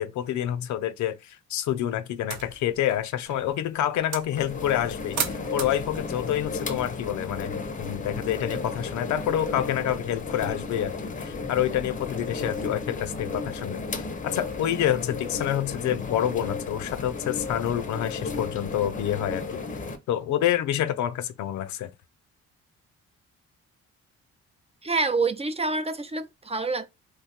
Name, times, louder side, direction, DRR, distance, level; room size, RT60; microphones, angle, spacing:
voice 1, 0.0-19.6 20.1-21.9, left 11 dB, 70° left, 0.5 m, -28 dB
sound 1, 2.2-7.7, right 6 dB, 70° right, 0.8 m, -38 dB
sound 2, 4.3-20.0, left 3 dB, 25° left, 0.6 m, -34 dB
voice 2, 24.8-26.9, right 3 dB, 20° right, 0.3 m, -27 dB
3.0 x 2.2 x 2.8 m
cardioid pair, 90°, 30 cm